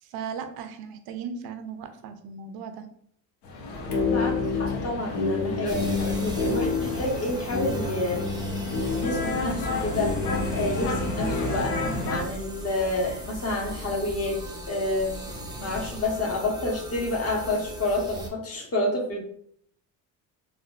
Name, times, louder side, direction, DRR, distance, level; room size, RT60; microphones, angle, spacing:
voice 1, 0.0-2.9, right 6 dB, 65° right, 8 dB, 0.6 m, -37 dB
sound 1, 3.4-12.2, left 3 dB, 70° left, 0.9 m, -28 dB
voice 2, 4.1-8.2 9.0-10.2 10.5-11.8 12.1-14.4 14.7-15.2 15.6-19.2, left 2 dB, 35° left, 0 dB, 1.0 m, -29 dB
sound 2, 5.7-18.3, right 1 dB, 10° right, 0.7 m, -38 dB
3.6 x 2.5 x 2.4 m, 0.66 s
cardioid pair, 95°, 40 cm